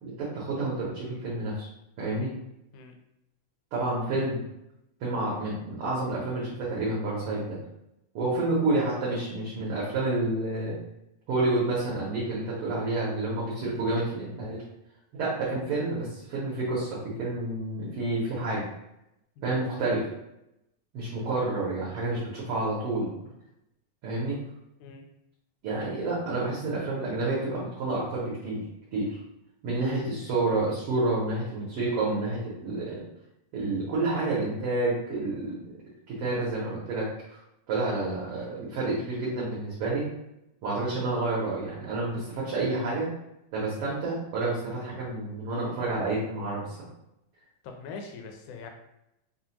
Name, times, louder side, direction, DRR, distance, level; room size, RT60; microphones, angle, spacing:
voice 1, 0.0-1.7 2.0-2.3 3.7-4.4 5.0-7.6 8.1-10.7 11.3-14.6 15.1-18.7 19.4-20.1 20.9-23.1 24.0-24.4 25.6-28.6 28.9-29.1 29.6-33.0 33.5-35.7 36.1-37.4 37.7-40.1 40.6-43.1 43.5-46.9, right 2 dB, 65° right, -7 dB, 1.4 m, -29 dB
voice 2, 47.6-48.7, left 4 dB, 85° left, 4 dB, 1.4 m, -42 dB
5.5 x 2.3 x 2.8 m, 0.86 s
omnidirectional pair, 3.4 m